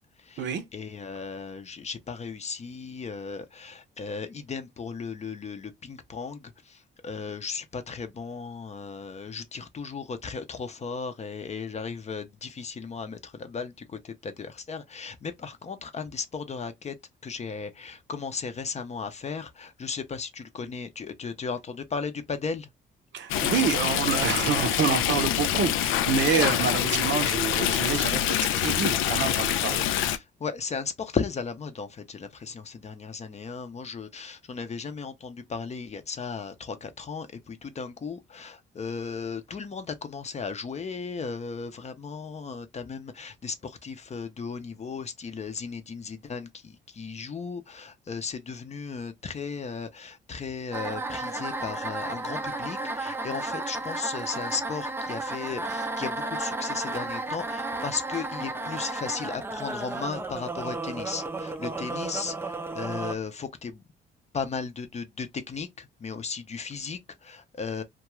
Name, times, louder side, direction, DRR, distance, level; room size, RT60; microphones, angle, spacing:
voice 1, 0.0-17.0 17.2-22.7 30.0-63.8 64.3-67.8, left 5 dB, 35° left, 0.6 m, -36 dB
voice 2, 23.1-29.8, right 7 dB, 70° right, 0.7 m, -27 dB
Stream, 23.3-30.2, left 11 dB, 85° left, 0.4 m, -25 dB
sound 1, 50.7-63.2, right 2 dB, 10° right, 0.4 m, -33 dB
2.3 x 2.3 x 2.9 m
cardioid pair, 90°, 20 cm